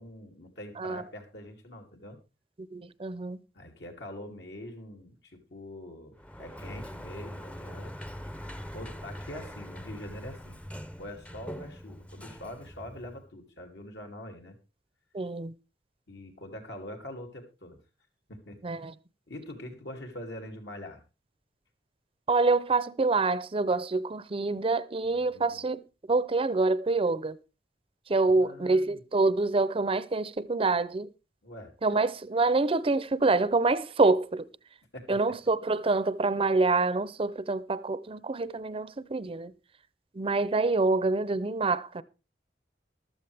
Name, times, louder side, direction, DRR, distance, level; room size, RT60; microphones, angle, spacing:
voice 1, 0.0-2.2 3.5-7.9 8.7-10.6 11.0-14.5 16.1-17.8 18.3-18.8 19.3-21.0 25.1-25.7 28.4-29.0 31.4-31.7 34.9-35.4, left 1 dB, 75° left, 2.9 m, -44 dB
voice 2, 2.7-3.4 15.1-15.5 18.6-18.9 22.3-25.8 26.1-27.4 28.1-31.1 31.8-34.5 35.1-39.5 40.1-42.0, right 3 dB, 30° right, 0.6 m, -26 dB
Sliding door, 6.2-13.3, equal, 5° left, 0.7 m, -42 dB
14.5 x 12.5 x 3.4 m
head